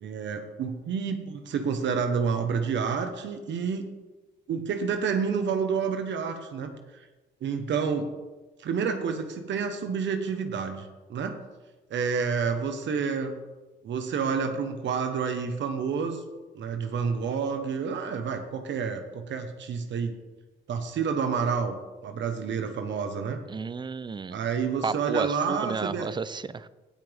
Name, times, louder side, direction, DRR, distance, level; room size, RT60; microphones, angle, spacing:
voice 1, 0.0-3.8 4.5-6.7 7.4-8.1 8.6-11.4 11.9-13.4 13.8-16.2 16.5-20.1 20.7-21.8 22.0-23.4 24.3-26.1, right 6 dB, 70° right, 7 dB, 1.2 m, -29 dB
voice 2, 23.5-24.4 24.8-26.7, right 5 dB, 25° right, 16 dB, 0.5 m, -32 dB
17.0 x 6.0 x 3.5 m, 1.2 s
cardioid pair, 90°, 20 cm